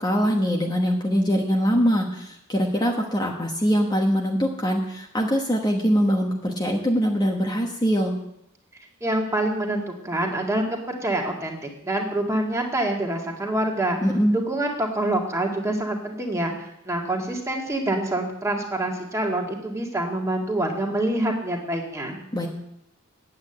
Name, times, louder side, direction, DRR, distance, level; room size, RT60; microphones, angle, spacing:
voice 1, 0.0-8.1 14.0-14.4 22.3-22.5, equal, 20° left, 0 dB, 1.2 m, -23 dB
voice 2, 9.0-14.0 14.3-16.5 16.8-22.2, right 1 dB, 15° right, 0 dB, 1.9 m, -26 dB
8.8 x 8.5 x 8.7 m, 0.79 s
head